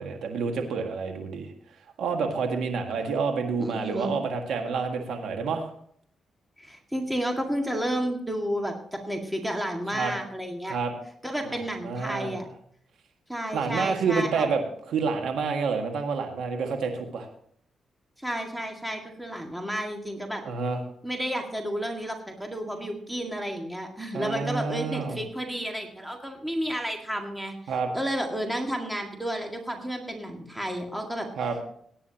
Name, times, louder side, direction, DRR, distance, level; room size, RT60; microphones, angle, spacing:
voice 1, 0.0-1.5 2.0-5.7 9.9-10.1 10.7-10.9 11.4-12.4 13.5-14.6 14.9-17.3 20.5-20.8 24.1-25.2 27.7-27.9 31.4-31.6, right 5 dB, 85° right, 3 dB, 1.8 m, -28 dB
voice 2, 3.6-4.1 6.6-10.8 11.2-12.5 13.3-14.4 18.2-20.4 21.0-31.3, equal, 5° right, 2 dB, 2.0 m, -31 dB
18.0 x 9.7 x 2.9 m, 0.62 s
cardioid pair, 85°, 0 cm